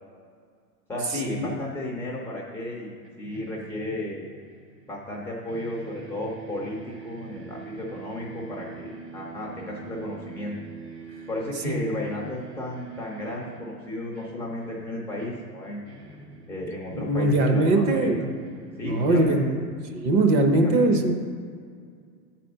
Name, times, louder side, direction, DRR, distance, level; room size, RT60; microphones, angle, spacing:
voice 1, 0.9-4.3 4.9-10.6 11.3-15.9 16.5-18.3 18.8-19.6 20.4-20.9, left 1 dB, 5° left, -5 dB, 0.5 m, -34 dB
sound 1, 3.0-5.2 5.5-19.5, right 4 dB, 80° right, 1.8 m, -44 dB
voice 2, 17.0-18.3 18.8-19.5 20.0-21.2, right 2 dB, 40° right, 5 dB, 0.9 m, -21 dB
8.1 x 4.2 x 6.6 m, 2.1 s
supercardioid pair, 140°, 48 cm